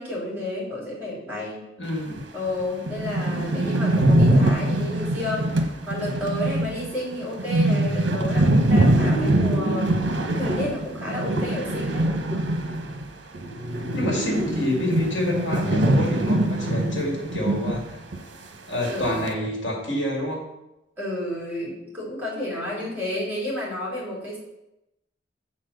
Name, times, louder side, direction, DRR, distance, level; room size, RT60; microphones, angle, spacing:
voice 1, 0.0-1.6 2.3-12.1 18.9-19.3 21.0-24.4, left 1 dB, 10° right, -6 dB, 2.8 m, -31 dB
voice 2, 1.8-2.2 13.9-17.8 18.7-20.4, left 1 dB, 75° left, -1 dB, 2.1 m, -28 dB
sound 1, 2.2-2.3 2.6-2.7 2.9-13.1 13.3-17.8 18.1-18.2 18.8-19.3, right 1 dB, 65° right, 0.9 m, -23 dB
7.2 x 4.2 x 6.5 m, 0.92 s
head